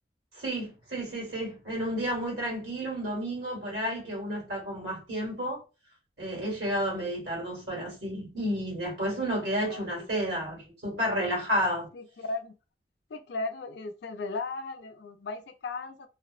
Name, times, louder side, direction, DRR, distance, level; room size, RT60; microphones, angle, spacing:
voice 1, 0.4-5.6 6.2-11.9, equal, 70° right, 1.4 m, -31 dB
voice 2, 9.7-10.6 11.9-12.5 13.1-16.1, left 3 dB, 70° left, 0.4 m, -37 dB
2.6 x 2.0 x 2.4 m
head